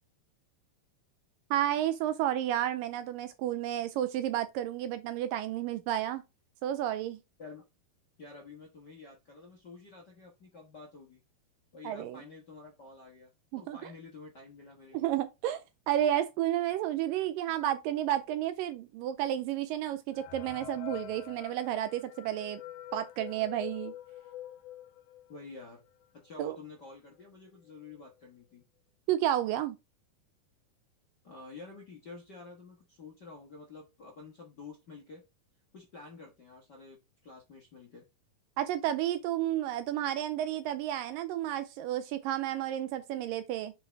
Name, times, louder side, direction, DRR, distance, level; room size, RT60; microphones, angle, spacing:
voice 1, 1.5-6.2 6.6-7.2 11.8-12.2 13.5-13.8 14.9-22.6 22.9-23.9 26.4-26.6 29.1-29.8 38.6-43.7, right 12 dB, 80° right, 2.1 m, -31 dB
voice 2, 8.2-11.2 11.7-13.3 13.6-15.1 25.3-25.8 26.1-28.6 31.2-35.2 35.7-38.0, left 3 dB, 55° left, 1.2 m, -49 dB
sound 1, 20.1-25.6 26.0-26.1 26.3-26.5 27.2-27.3 27.7-28.0, left 13 dB, 90° left, 2.5 m, -46 dB
7.7 x 5.1 x 3.5 m
omnidirectional pair, 4.3 m